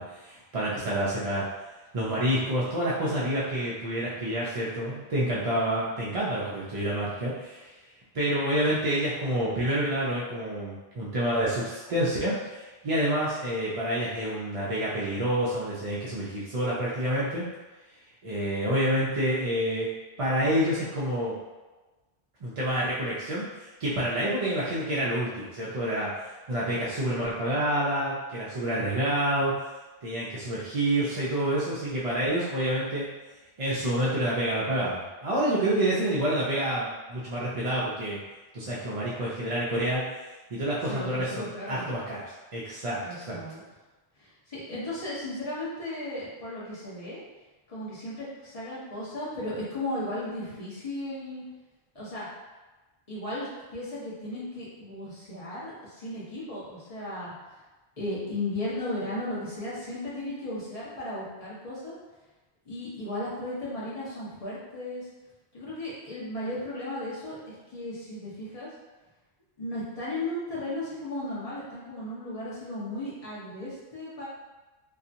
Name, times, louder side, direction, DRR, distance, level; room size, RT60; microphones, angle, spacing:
voice 1, 0.0-1.5 1.9-7.7 8.1-17.5 18.2-19.9 20.2-21.4 22.4-23.4 23.8-26.2 26.5-29.6 30.0-33.1 33.6-38.2 38.5-40.0 40.5-43.4, right 1 dB, 50° right, -7 dB, 0.4 m, -28 dB
voice 2, 40.9-41.9 43.0-43.6 44.2-47.2 47.7-51.4 51.9-52.3 53.1-57.3 58.0-62.0 62.7-65.1 65.5-68.7 69.6-74.3, left 1 dB, 35° left, -8 dB, 0.8 m, -35 dB
2.7 x 2.4 x 2.5 m, 1.2 s
omnidirectional pair, 1.1 m